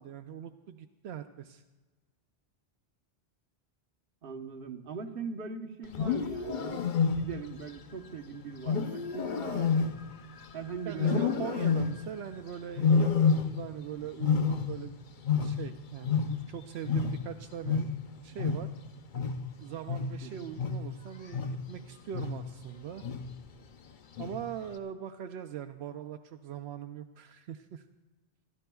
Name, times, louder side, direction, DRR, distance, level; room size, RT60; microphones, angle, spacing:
voice 1, 0.0-1.6 10.9-14.9 15.3-17.9 18.2-18.7 19.6-23.0 24.2-27.8, right 9 dB, 85° right, 7 dB, 0.8 m, -41 dB
voice 2, 4.2-6.9 7.1-9.9 10.5-11.5 20.2-20.5, right 5 dB, 60° right, 3 dB, 1.2 m, -41 dB
Wild animals, 5.8-7.6 8.6-10.5 11.0-12.2 12.8-13.8 14.1-16.6 16.9-21.8 22.1-22.6 23.0-23.5 24.2-24.6, left 5 dB, 55° left, 0.8 m, -29 dB
28.5 x 12.0 x 2.3 m, 1.2 s
omnidirectional pair, 1.1 m